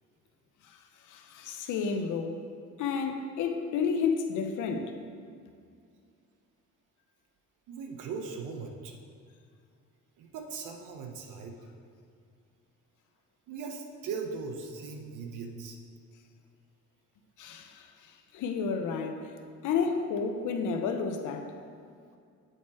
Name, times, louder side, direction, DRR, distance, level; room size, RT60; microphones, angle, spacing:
voice 1, 0.6-2.4 2.8-4.9 17.4-19.3 19.6-21.5, left 5 dB, 80° left, 6 dB, 0.8 m, -31 dB
voice 2, 7.7-8.9 10.2-11.6 13.5-15.8, right 5 dB, 85° right, 4 dB, 0.9 m, -39 dB
8.0 x 4.2 x 4.8 m, 2.3 s
cardioid pair, 90°, 30 cm